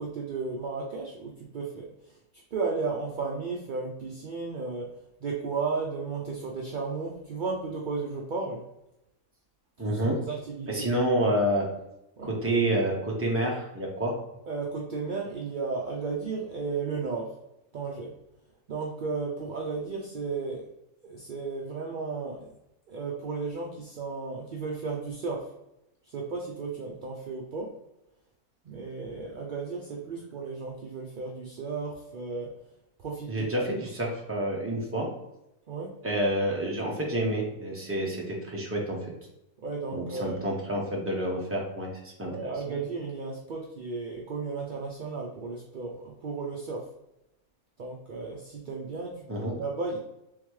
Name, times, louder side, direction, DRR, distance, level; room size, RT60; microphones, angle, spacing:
voice 1, 0.0-1.9 2.5-4.9 5.2-8.6 9.9-10.9 12.2-12.3 14.5-17.3 17.7-18.1 18.7-20.7 21.0-22.5 22.9-25.5 26.1-27.7 28.6-32.5 33.0-33.6 35.7-35.9 39.6-40.4 42.2-46.8 47.8-50.0, right 4 dB, 60° right, -1 dB, 0.5 m, -34 dB
voice 2, 9.8-10.2 10.7-11.7 12.2-14.2 33.3-35.1 36.0-39.0 39.9-42.7 49.3-49.5, right 1 dB, 10° right, -2 dB, 0.8 m, -28 dB
3.7 x 3.5 x 3.1 m, 0.86 s
omnidirectional pair, 1.5 m